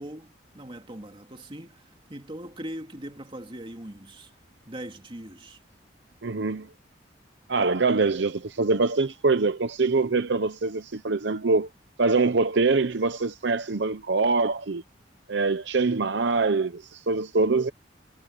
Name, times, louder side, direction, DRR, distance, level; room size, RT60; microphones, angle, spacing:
voice 1, 0.0-1.8 2.1-4.3 4.6-5.6, right 1 dB, 30° right, 2.7 m, -40 dB
voice 2, 6.2-6.7 7.5-11.7 12.0-14.8 15.3-17.7, right 3 dB, 70° right, 0.8 m, -24 dB
head